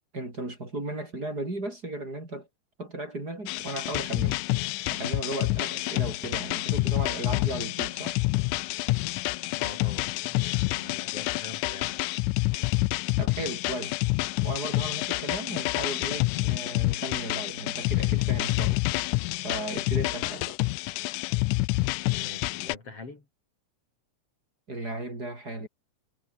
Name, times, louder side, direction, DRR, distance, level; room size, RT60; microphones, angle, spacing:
voice 1, 0.1-2.5 2.8-4.4 4.9-8.2 13.2-14.0 14.4-18.8 19.4-20.6 24.7-25.7, right 2 dB, 30° right, 6.2 m, -35 dB
sound 1, 3.5-22.8, left 21 dB, 90° left, 2.1 m, -28 dB
voice 2, 9.5-12.1 22.1-23.3, left 3 dB, 50° left, 5.9 m, -44 dB
omnidirectional pair, 3.5 m